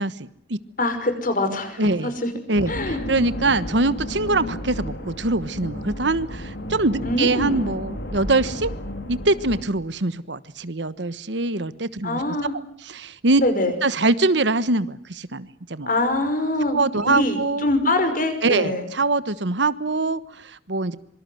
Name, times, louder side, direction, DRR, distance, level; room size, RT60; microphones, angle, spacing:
voice 1, 0.0-0.6 1.8-2.1 2.5-8.7 9.1-12.2 12.8-13.4 13.8-15.9 16.7-17.7 18.4-21.0, right 2 dB, 70° right, 15 dB, 1.3 m, -23 dB
voice 2, 0.8-2.3 2.7-3.1 7.0-7.7 12.0-12.5 13.4-13.7 15.9-16.8 17.1-18.8, left 1 dB, 45° left, 8 dB, 5.7 m, -24 dB
sound 1, 2.5-9.6, left 1 dB, 70° left, 4.2 m, -33 dB
26.0 x 24.5 x 7.9 m, 0.66 s
head